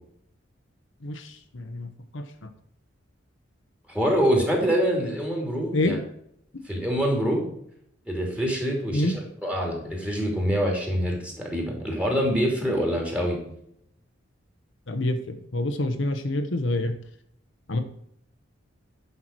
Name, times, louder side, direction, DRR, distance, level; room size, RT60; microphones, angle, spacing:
voice 1, 1.0-2.5 5.7-6.0 8.9-9.1 14.9-16.9 17.7-17.8, left 1 dB, 70° left, 7 dB, 1.0 m, -27 dB
voice 2, 3.9-6.0 6.6-7.4 8.0-13.4, equal, 5° right, 0 dB, 2.8 m, -25 dB
10.5 x 5.8 x 4.6 m, 0.71 s
head